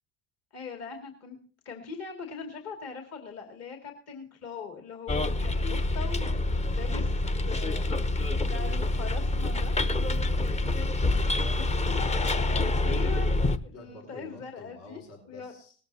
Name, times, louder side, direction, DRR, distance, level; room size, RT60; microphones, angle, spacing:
voice 1, 0.5-1.4 1.6-8.1 8.5-9.7 11.6-11.7 12.8-13.4 13.6-15.0 15.3-15.5, left 5 dB, 45° left, 3 dB, 2.4 m, -41 dB
Bus, 5.1-13.6, left 2 dB, 20° left, 0.8 m, -27 dB
voice 2, 10.1-12.2 13.7-15.7, left 2 dB, 65° left, 0 dB, 4.3 m, -49 dB
19.0 x 13.5 x 2.8 m, 0.43 s
hypercardioid pair, 80°, 35 cm